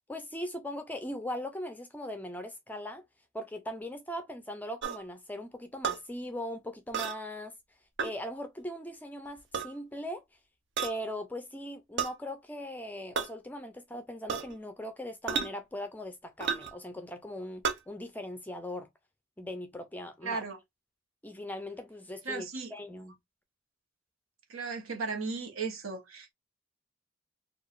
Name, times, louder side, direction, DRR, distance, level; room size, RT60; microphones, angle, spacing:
voice 1, 0.1-3.0 3.3-7.5 8.0-10.2 10.8-18.9 19.4-20.5 21.2-23.2, equal, 10° left, 0.4 m, -39 dB
sound 1, 4.8-5.0 5.8-6.0 6.9-7.2 8.0-8.1 9.4-9.7 10.8-11.0 12.0-12.1 13.1-13.3 14.3-14.5 15.3-15.5 16.4-16.7 17.6-17.8, right 6 dB, 60° right, 0.6 m, -31 dB
voice 2, 20.2-20.6 22.2-22.7 24.5-26.3, right 4 dB, 85° right, 1.0 m, -36 dB
4.6 x 2.4 x 2.4 m
head